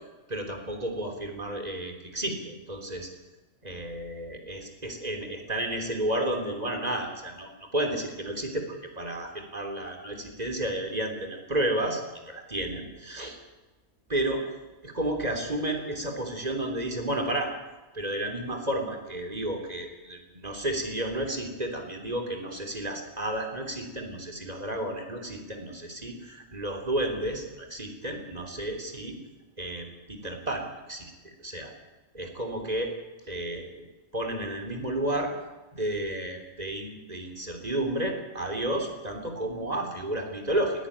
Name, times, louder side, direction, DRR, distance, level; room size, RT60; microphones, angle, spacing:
voice 1, 0.3-3.1 3.6-13.4 14.1-14.4 14.8-17.5 17.9-29.2 29.6-31.7 32.1-32.9 33.3-33.9 34.1-35.3 35.7-40.9, right 1 dB, 30° right, 3 dB, 3.5 m, -32 dB
19.5 x 16.0 x 10.0 m, 1.1 s
omnidirectional pair, 1.3 m